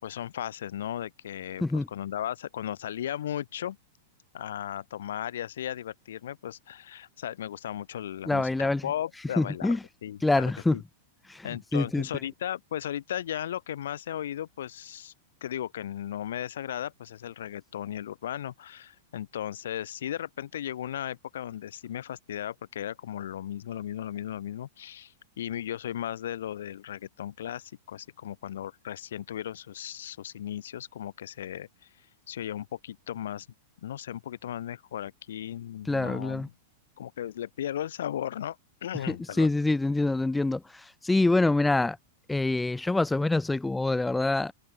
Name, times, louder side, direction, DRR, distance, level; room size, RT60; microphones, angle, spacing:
voice 1, 0.0-3.8 4.3-9.7 10.0-10.8 11.4-15.1 15.4-31.7 32.3-33.5 33.8-36.4 37.0-38.6 38.8-39.5, left 11 dB, 75° left, 3.2 m, -36 dB
voice 2, 8.3-8.9 9.4-9.8 10.2-10.8 11.3-12.1 35.9-36.5 39.1-42.0 42.3-44.5, left 2 dB, 5° left, 1.6 m, -26 dB
supercardioid pair, 175°, 0 cm